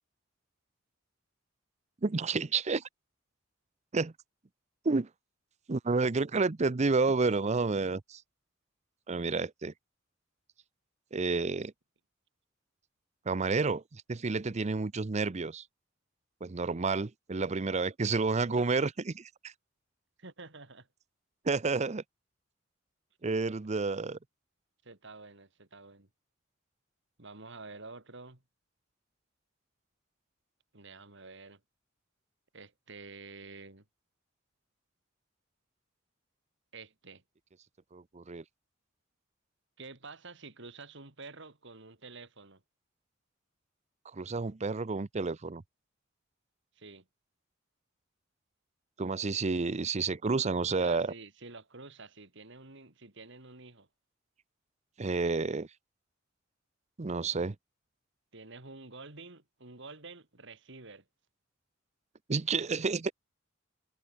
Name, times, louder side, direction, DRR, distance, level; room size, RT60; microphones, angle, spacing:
voice 1, 2.0-2.8 3.9-4.1 4.8-5.1 5.7-8.2 9.1-9.7 11.1-11.7 13.3-15.6 16.4-19.5 21.4-22.0 23.2-24.2 37.9-38.4 44.1-45.6 49.0-51.1 55.0-55.7 57.0-57.6 62.3-63.1, right 4 dB, 35° right, 0.6 m, -30 dB
voice 2, 20.2-20.9 24.8-26.1 27.2-28.4 30.7-31.6 32.5-33.8 36.7-37.2 39.8-42.6 46.7-47.0 50.8-53.9 58.3-61.0, right 3 dB, 65° right, 3.2 m, -49 dB
head